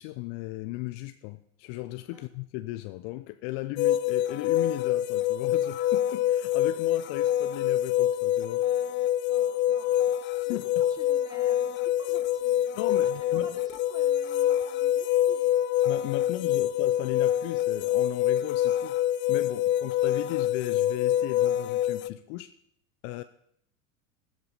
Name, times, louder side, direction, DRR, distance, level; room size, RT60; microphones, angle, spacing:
voice 1, 0.0-8.6 10.3-10.7 12.7-13.6 15.8-19.0 19.3-22.5 23.0-23.2, left 18 dB, 50° left, 11 dB, 0.9 m, -36 dB
sound 1, 3.8-22.1, left 12 dB, 30° left, 0.5 m, -26 dB
voice 2, 9.3-10.2 10.5-10.6 10.9-15.5 19.7-20.2, right 1 dB, 10° right, 0 dB, 4.6 m, -49 dB
15.0 x 13.0 x 5.7 m, 0.68 s
hypercardioid pair, 90°, 41 cm